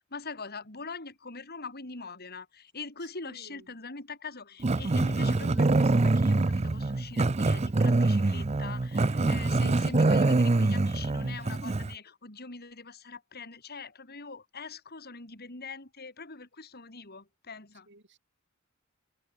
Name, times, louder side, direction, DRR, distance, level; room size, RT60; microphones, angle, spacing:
voice 1, 0.1-17.9, left 4 dB, 50° left, 4.5 m, -43 dB
voice 2, 3.0-3.8 17.9-18.2, right 2 dB, 60° right, 7.4 m, -55 dB
Growling, 4.6-11.9, right 2 dB, 30° right, 0.6 m, -25 dB
head